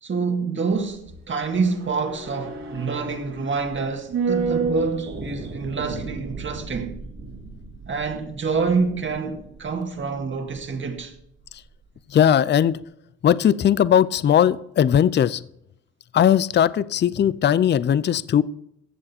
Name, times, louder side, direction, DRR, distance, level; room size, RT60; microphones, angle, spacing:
voice 1, 0.0-6.9 7.9-11.1, right 4 dB, 40° right, 1.9 m, -27 dB
sound 1, 0.7-11.2 11.4-11.5, right 4 dB, 60° right, 3.0 m, -33 dB
voice 2, 12.1-12.8 13.2-15.4 16.1-18.4, left 9 dB, 35° left, 0.5 m, -18 dB
14.5 x 7.6 x 4.3 m
cardioid pair, 90°, 30 cm